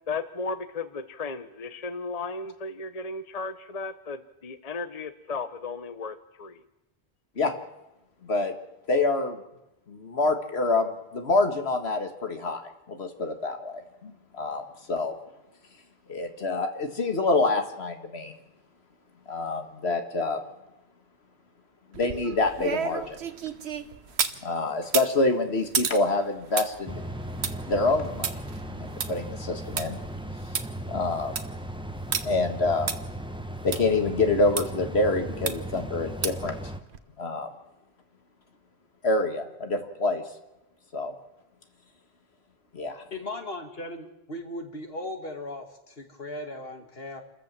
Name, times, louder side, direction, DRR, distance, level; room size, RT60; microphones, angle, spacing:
voice 1, 0.1-6.6, left 4 dB, 40° left, 11 dB, 1.0 m, -35 dB
voice 2, 8.2-8.5 8.9-9.4 9.9-12.6 12.9-14.6 14.9-15.2 16.1-18.3 19.3-20.4 21.9-23.2 24.4-27.0 27.7-28.3 28.7-30.0 30.9-31.3 32.2-32.9 33.6-36.5 37.2-37.5 39.0-40.2 40.9-41.1 42.7-43.0, left 3 dB, 80° left, 6 dB, 2.0 m, -26 dB
sound 1, 21.9-24.4 24.8-29.9 30.2-30.3 30.5-30.6 31.1-31.5 32.1-32.2 32.9-33.0 33.7-33.8 34.6-34.7 35.5-35.8 36.2-36.5 36.9-37.0, right 6 dB, 90° right, 1.4 m, -32 dB
sound 2, 26.9-36.8, right 1 dB, 5° right, 1.0 m, -37 dB
voice 3, 43.1-47.2, left 1 dB, 65° left, 5 dB, 2.5 m, -37 dB
28.0 x 14.0 x 7.5 m, 0.94 s
omnidirectional pair, 1.1 m